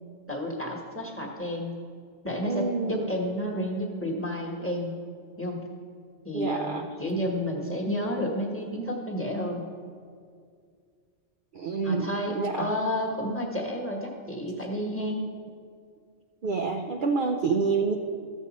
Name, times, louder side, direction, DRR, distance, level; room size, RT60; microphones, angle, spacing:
voice 1, 0.3-1.8 2.2-4.9 5.4-5.6 6.2-9.6 11.8-15.2, equal, 10° left, -1 dB, 1.2 m, -31 dB
voice 2, 2.5-3.1 6.3-6.9 11.5-12.7 16.4-17.9, right 4 dB, 55° right, 3 dB, 0.6 m, -28 dB
13.5 x 7.3 x 4.1 m, 2.2 s
omnidirectional pair, 1.3 m